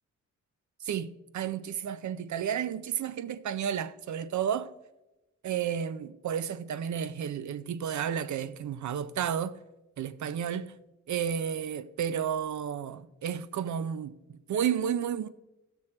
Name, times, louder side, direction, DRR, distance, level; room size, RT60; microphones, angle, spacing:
voice 1, 0.8-4.7 5.4-9.6 10.0-10.7 11.1-15.3, right 8 dB, 75° right, 0.5 m, -32 dB
16.0 x 6.2 x 4.3 m
wide cardioid pair, 160°, 29 cm